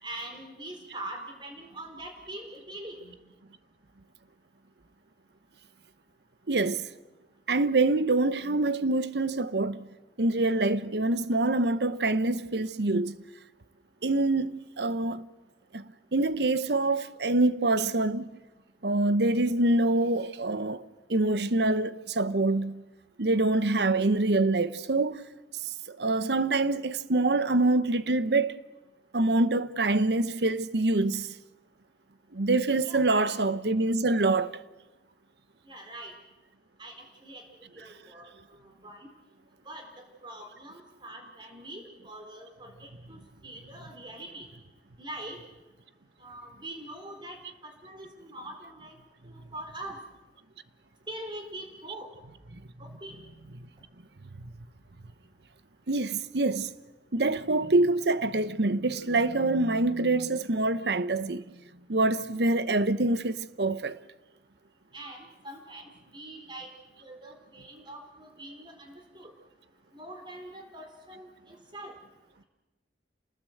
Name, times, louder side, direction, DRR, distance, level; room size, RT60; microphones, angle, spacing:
voice 1, 0.0-3.2 32.8-33.3 35.6-36.1 36.8-37.0 37.2-37.4 37.7-39.1 39.6-44.5 45.0-45.4 46.2-50.0 51.1-52.1 52.8-53.3 64.9-66.7 67.0-69.3 69.9-72.0, right 1 dB, 25° right, 4.1 m, -43 dB
voice 2, 6.5-6.9 7.5-9.9 10.2-13.1 14.0-15.3 15.7-18.3 18.8-20.8 21.1-22.8 23.2-25.2 25.6-28.6 29.1-31.3 32.3-34.5 37.8-37.9 53.5-53.6 54.4-54.5 55.9-56.7 57.1-61.4 61.9-64.0, right 2 dB, 70° right, 1.0 m, -25 dB
29.0 x 19.5 x 7.9 m
head